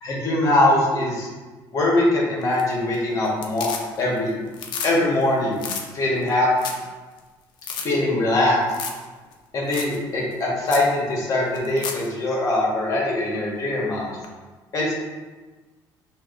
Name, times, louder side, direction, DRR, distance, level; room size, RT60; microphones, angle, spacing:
voice 1, 0.0-1.3 1.7-3.7 4.0-4.3 4.8-5.6 5.9-6.5 7.8-8.6 9.5-14.1 14.7-15.0, left 1 dB, 40° left, -4 dB, 1.4 m, -22 dB
sound 1, 2.4-2.9 3.2-4.2 4.5-4.9 5.2-5.3 5.6-5.8 6.3-6.4 6.6-6.9 7.2-7.3 7.6-7.9 8.7-9.0 9.3-9.4 9.7-10.0 10.3-10.4 10.7-10.9 11.5-12.1 14.2-14.3, left 6 dB, 60° left, 0.6 m, -32 dB
5.9 x 2.7 x 2.5 m, 1.3 s
cardioid pair, 115°, 8 cm